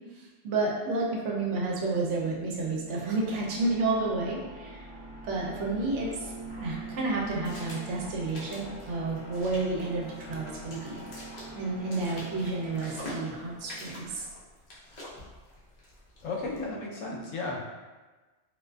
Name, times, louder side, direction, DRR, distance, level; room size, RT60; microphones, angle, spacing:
voice 1, 0.1-4.9 5.2-11.0 11.5-14.2, right 3 dB, 75° right, -3 dB, 0.9 m, -31 dB
sound 1, 1.4-14.2, right 2 dB, 50° right, 1.2 m, -44 dB
sound 2, 5.7-16.7, left 1 dB, 45° left, 0.6 m, -47 dB
voice 2, 16.2-17.6, left 3 dB, 85° left, -2 dB, 1.0 m, -34 dB
2.5 x 2.4 x 2.2 m, 1.2 s
omnidirectional pair, 1.3 m